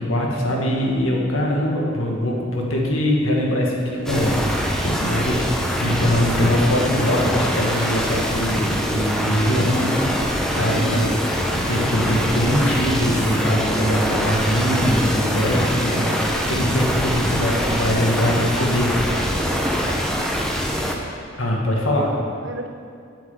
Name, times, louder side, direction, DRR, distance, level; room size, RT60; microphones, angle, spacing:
voice 1, 0.0-18.9 21.4-22.1, equal, 90° left, -1 dB, 2.0 m, -22 dB
sound 1, 4.1-21.0, equal, 5° left, 0.9 m, -23 dB
voice 2, 10.6-11.2 18.2-18.7 18.9-20.2 22.1-22.7, right 2 dB, 65° right, 5 dB, 0.9 m, -33 dB
8.8 x 7.7 x 7.3 m, 2.4 s
head